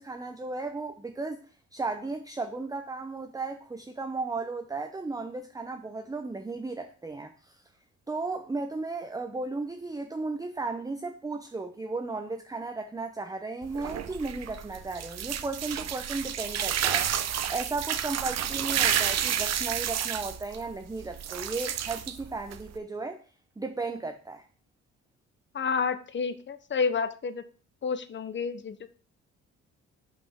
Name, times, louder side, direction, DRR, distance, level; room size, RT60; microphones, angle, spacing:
voice 1, 0.0-1.4 1.7-7.6 8.1-23.2 23.6-24.4, right 3 dB, 10° right, 0.6 m, -35 dB
sound 1, 13.6-22.8, right 9 dB, 60° right, 0.7 m, -30 dB
voice 2, 25.5-27.4 27.8-28.8, left 5 dB, 40° left, 0.8 m, -29 dB
5.7 x 5.3 x 5.7 m
cardioid pair, 90°, 30 cm